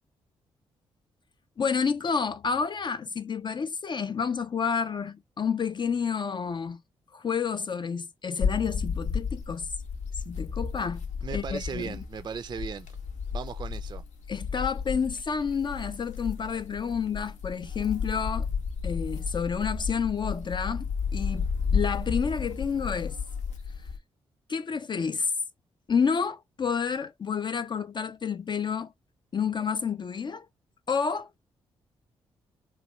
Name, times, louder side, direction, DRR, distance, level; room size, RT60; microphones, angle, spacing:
voice 1, 1.6-6.8 7.1-9.7 10.3-11.0 11.3-12.0 14.3-18.5 18.8-21.5 21.7-23.2 24.5-25.3 25.9-28.9 29.3-30.5 30.9-31.3, left 6 dB, 40° left, 0.4 m, -29 dB
sound 1, 8.4-24.0, left 5 dB, 75° left, 0.7 m, -32 dB
voice 2, 11.2-12.9 13.3-14.0, right 6 dB, 35° right, 0.4 m, -37 dB
3.0 x 2.3 x 3.0 m
hypercardioid pair, 45°, 13 cm